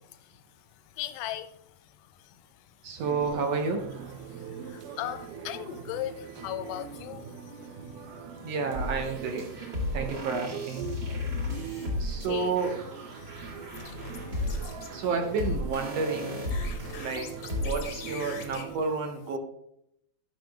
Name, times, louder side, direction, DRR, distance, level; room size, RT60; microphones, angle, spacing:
voice 1, 0.1-2.7 4.3-8.5 11.2-12.5 13.2-15.0 16.7-17.1, left 12 dB, 90° left, 2.2 m, -41 dB
voice 2, 2.8-3.9 8.4-9.5 9.9-10.9 12.0-12.8 14.9-16.4 17.0-17.3 17.6-19.4, right 4 dB, 65° right, 1.8 m, -30 dB
sound 1, 3.0-18.7, right 7 dB, 90° right, 2.3 m, -42 dB
sound 2, 8.7-18.1, left 2 dB, 40° right, 2.4 m, -34 dB
sound 3, 13.2-14.9 16.4-18.6, left 5 dB, 70° left, 1.1 m, -43 dB
11.5 x 6.2 x 3.5 m
omnidirectional pair, 3.6 m